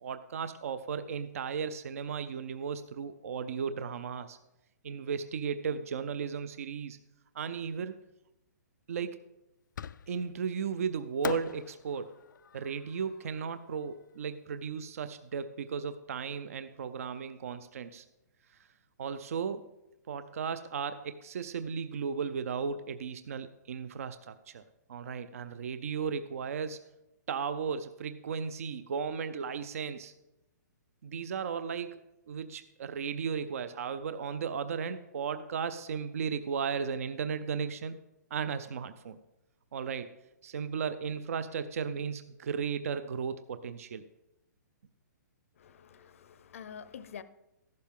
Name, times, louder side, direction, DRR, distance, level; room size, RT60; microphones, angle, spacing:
voice 1, 0.0-4.4 4.8-7.0 7.3-8.0 8.9-9.2 10.1-12.2 12.5-18.0 19.0-19.7 20.1-24.6 24.9-26.8 27.3-30.1 31.0-32.0 32.3-37.9 38.3-39.2 39.7-40.1 40.4-44.0, right 6 dB, 50° right, 0.5 m, -35 dB
Fireworks, 9.8-10.4 11.2-14.4, left 8 dB, 85° left, 0.4 m, -42 dB
voice 2, 45.6-47.2, left 7 dB, 45° left, 0.6 m, -47 dB
14.5 x 11.5 x 3.7 m
hypercardioid pair, 175°, 10 cm